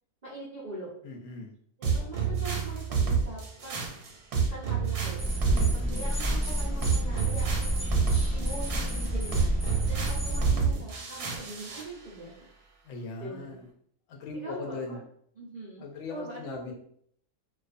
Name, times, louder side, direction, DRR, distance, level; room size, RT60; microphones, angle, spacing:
voice 1, 0.2-0.9 1.8-3.8 4.5-7.9 8.3-9.5 9.8-12.5 13.2-13.6 14.4-15.0 15.4-16.7, right 2 dB, 70° right, -8 dB, 0.4 m, -42 dB
voice 2, 1.0-1.5 5.4-6.1 12.8-13.7 14.1-15.0 15.8-16.7, left 3 dB, 70° left, 1 dB, 0.8 m, -39 dB
sound 1, 1.8-11.9, right 6 dB, 85° right, 1.1 m, -29 dB
sound 2, 5.2-10.5, equal, 10° right, 0.4 m, -29 dB
2.4 x 2.3 x 2.4 m, 0.64 s
omnidirectional pair, 1.6 m